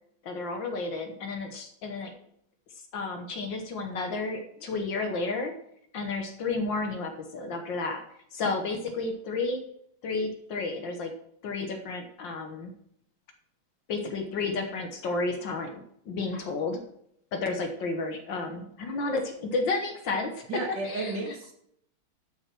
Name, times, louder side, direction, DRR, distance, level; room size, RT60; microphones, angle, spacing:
voice 1, 0.2-2.1 2.9-5.5 5.9-8.0 8.3-9.6 10.0-11.1 11.4-12.7 13.9-16.8 17.3-20.4 20.8-21.3, left 3 dB, 65° left, 5 dB, 1.8 m, -32 dB
voice 2, 20.5-21.5, right 3 dB, 55° right, 0 dB, 2.5 m, -33 dB
12.0 x 6.3 x 6.0 m, 0.71 s
omnidirectional pair, 2.3 m